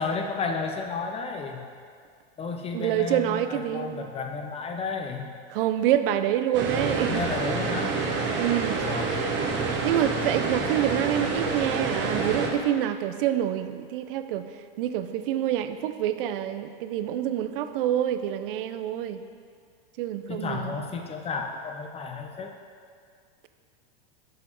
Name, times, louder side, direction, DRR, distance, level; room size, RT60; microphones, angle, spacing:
voice 1, 0.0-1.6 2.4-5.3 6.7-8.0 8.9-9.2 20.3-22.5, left 4 dB, 20° left, 4 dB, 0.5 m, -32 dB
voice 2, 2.7-4.1 5.5-7.2 8.4-8.8 9.7-14.5 14.8-19.2 20.0-20.8, right 11 dB, 65° right, 10 dB, 0.5 m, -27 dB
sound 1, 6.5-12.5, right 4 dB, 40° right, 1.0 m, -28 dB
6.3 x 5.7 x 4.4 m, 2.1 s
hypercardioid pair, 115°, 29 cm